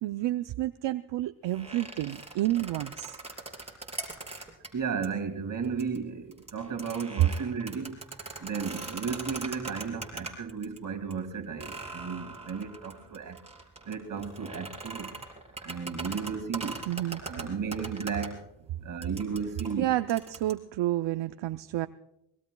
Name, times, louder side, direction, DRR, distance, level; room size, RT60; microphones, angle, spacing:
voice 1, 0.0-3.2 16.9-17.2 19.8-21.9, right 15 dB, 70° right, 0.6 m, -30 dB
sound 1, 1.5-4.7 5.0-5.1 5.6-6.0 6.3-10.8 11.1-11.2 11.6-18.3 19.0-20.5, right 3 dB, 15° right, 3.6 m, -41 dB
voice 2, 4.7-8.0 8.4-13.4 13.9-15.1 15.6-16.9 17.2-18.5 18.8-19.9, right 6 dB, 40° right, 2.3 m, -34 dB
24.5 x 20.5 x 2.3 m
cardioid pair, 90°, 46 cm